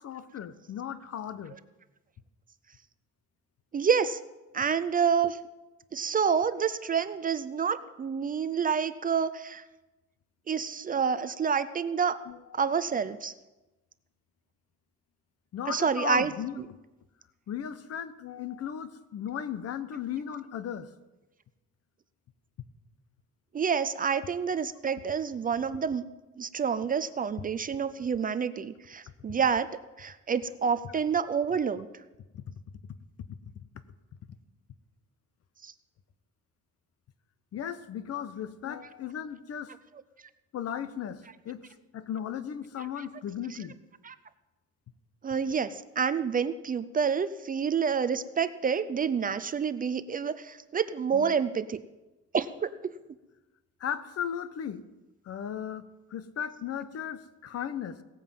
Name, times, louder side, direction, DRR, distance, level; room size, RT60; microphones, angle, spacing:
voice 1, 0.0-1.6 12.3-12.6 15.5-16.5 17.5-20.9 32.3-32.5 33.3-33.4 37.5-39.7 40.5-41.6 41.9-43.8 51.1-51.3 53.8-54.8 55.2-58.0, left 9 dB, 55° left, 13 dB, 1.0 m, -36 dB
voice 2, 3.7-4.2 4.5-5.4 5.9-9.6 10.5-12.2 12.5-13.3 15.7-16.3 16.6-16.7 23.5-26.0 26.4-31.9 35.6-35.7 44.1-44.2 45.2-51.8 52.3-53.0, right 6 dB, 30° right, 13 dB, 0.5 m, -28 dB
17.5 x 9.1 x 7.5 m, 1.1 s
cardioid pair, 165°, 30 cm